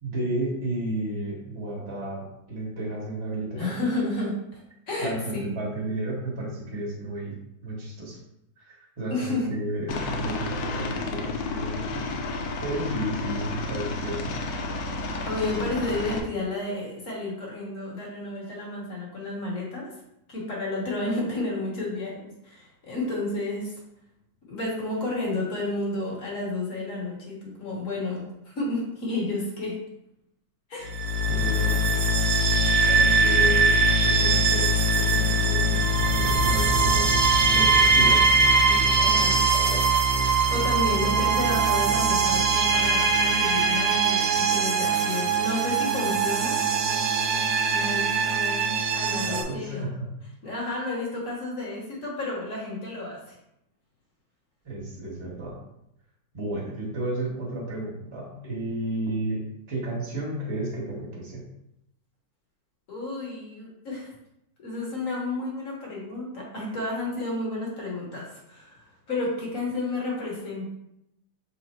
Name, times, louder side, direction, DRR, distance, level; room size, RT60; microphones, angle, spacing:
voice 1, 0.0-3.8 5.0-8.2 8.6-12.1 12.6-14.4 31.3-32.0 32.9-33.7 34.0-37.2 37.5-38.2 38.6-39.9 49.2-50.1 54.6-55.6 56.3-61.4, right 1 dB, 20° right, -5 dB, 1.0 m, -32 dB
voice 2, 3.6-4.6 4.9-5.5 9.1-9.5 15.3-19.9 20.3-22.2 22.4-23.8 24.5-29.8 30.7-31.0 32.6-33.3 39.0-39.4 40.5-46.6 47.7-49.9 50.4-53.3 62.9-64.1 64.6-70.7, left 2 dB, 45° left, -4 dB, 1.5 m, -31 dB
Aircraft, 9.9-16.2, left 2 dB, 75° left, 0.8 m, -31 dB
sound 1, 30.8-49.4, right 3 dB, 75° right, 1.4 m, -22 dB
5.8 x 2.0 x 4.3 m, 0.81 s
omnidirectional pair, 2.2 m